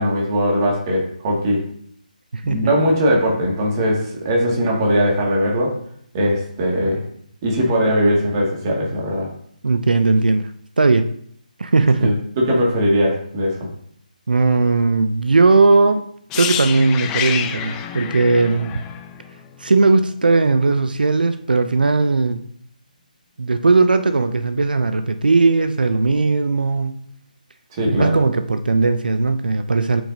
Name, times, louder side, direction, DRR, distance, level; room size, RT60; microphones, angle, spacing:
voice 1, 0.0-1.7 2.4-5.8 6.1-7.0 7.4-9.3 12.0-13.7 27.7-28.2, equal, 30° right, -2 dB, 2.0 m, -20 dB
voice 2, 2.3-2.7 9.6-10.5 10.8-11.1 11.6-12.2 14.3-16.0 16.4-18.8 19.6-22.5 23.4-27.1 27.9-30.0, right 3 dB, 80° right, 9 dB, 0.5 m, -17 dB
sound 1, 16.3-20.2 20.4-20.6, left 9 dB, 10° left, 0.4 m, -28 dB
8.3 x 6.0 x 2.7 m, 0.65 s
figure-of-eight pair, 155°, 5 cm